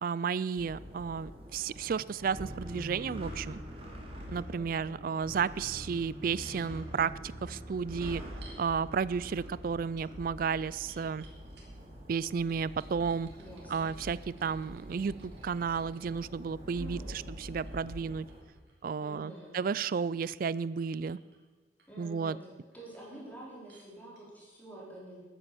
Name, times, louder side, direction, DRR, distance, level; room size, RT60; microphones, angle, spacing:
voice 1, 0.0-3.6 4.3-7.1 7.4-8.2 8.6-11.3 12.1-13.3 13.7-18.3 18.8-21.2 22.0-22.4, right 6 dB, 50° right, 19 dB, 0.4 m, -32 dB
sound 1, 0.6-18.4, equal, 35° right, 2.4 m, -45 dB
voice 2, 4.5-5.2 13.3-13.9 16.6-17.3 19.0-19.6 21.9-22.4 22.7-25.2, right 1 dB, 10° left, -5 dB, 4.2 m, -48 dB
sound 2, 6.4-6.7 8.0-8.6 9.3-9.4 9.7-11.9 12.5-16.1 17.1-20.5 20.8-21.4 21.8-22.3 22.7-23.3 23.7-23.9 24.2-24.3, right 3 dB, 70° right, 3.3 m, -60 dB
13.0 x 9.8 x 7.0 m, 1.3 s
head